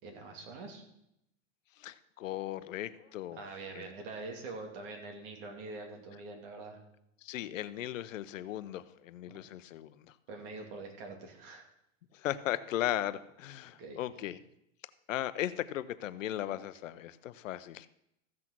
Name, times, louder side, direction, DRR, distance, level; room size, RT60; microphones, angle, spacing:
voice 1, 0.0-0.8 3.3-6.8 9.3-9.4 10.3-11.6 13.7-14.0, right 3 dB, 45° right, 2 dB, 2.9 m, -44 dB
voice 2, 1.8-3.4 3.7-3.9 7.2-9.9 12.1-14.4 15.1-17.9, left 13 dB, 85° left, 14 dB, 0.8 m, -37 dB
15.0 x 6.2 x 6.1 m, 0.79 s
supercardioid pair, 165°, 38 cm